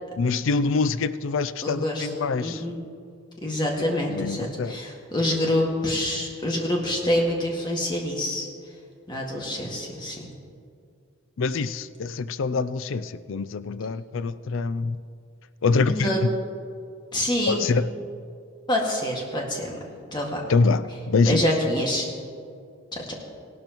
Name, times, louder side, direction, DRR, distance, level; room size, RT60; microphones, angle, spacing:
voice 1, 0.2-2.6 3.8-4.8 11.4-15.0 15.6-16.3 17.5-17.8 20.5-21.4, left 4 dB, 70° left, 15 dB, 0.4 m, -25 dB
voice 2, 1.6-2.1 2.4-2.8 3.4-8.5 9.1-10.3 15.9-16.2 17.1-17.7 18.7-19.8 20.1-20.4 21.2-22.1 22.9-23.0, left 1 dB, 20° left, -1 dB, 1.9 m, -26 dB
18.0 x 12.0 x 3.0 m, 2.4 s
head